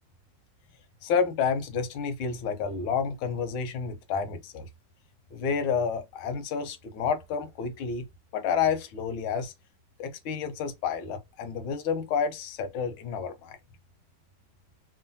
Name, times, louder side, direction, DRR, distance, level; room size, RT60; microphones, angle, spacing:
voice 1, 1.0-4.7 5.3-8.0 8.3-9.5 10.0-13.6, left 6 dB, 90° left, 1.6 m, -30 dB
3.6 x 2.2 x 2.6 m
omnidirectional pair, 2.2 m